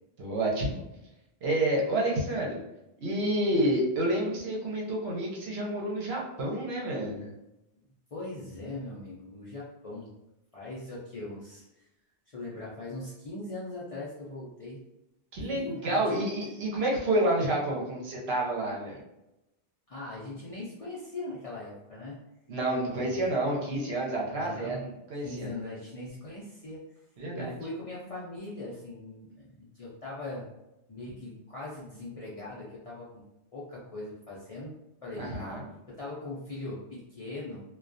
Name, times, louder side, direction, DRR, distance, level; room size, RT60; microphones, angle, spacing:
voice 1, 0.2-0.8 1.4-2.6 3.0-7.3 15.3-19.0 22.5-25.8 27.2-27.6 35.2-35.7, right 1 dB, 70° right, -2 dB, 0.9 m, -29 dB
voice 2, 8.1-10.1 10.5-11.9 12.3-14.8 15.5-16.2 19.9-22.2 22.9-23.4 24.2-24.9 25.2-26.8 27.3-30.5 30.9-33.2 33.5-34.7 35.0-35.6 36.0-37.6, left 2 dB, 50° left, -7 dB, 0.4 m, -40 dB
2.3 x 2.2 x 2.5 m, 0.91 s
omnidirectional pair, 1.1 m